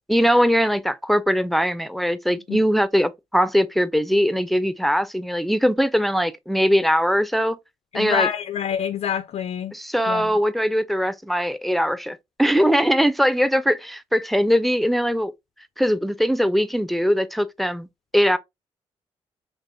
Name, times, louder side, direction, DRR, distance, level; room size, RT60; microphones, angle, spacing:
voice 1, 0.1-7.6 7.9-8.3 9.7-15.3 15.8-17.9 18.1-18.4, equal, ahead, 0.5 m, -21 dB
voice 2, 7.9-9.7 10.1-10.3, left 8 dB, 65° left, 0.4 m, -26 dB
5.2 x 3.2 x 2.2 m
supercardioid pair, 55°, 12 cm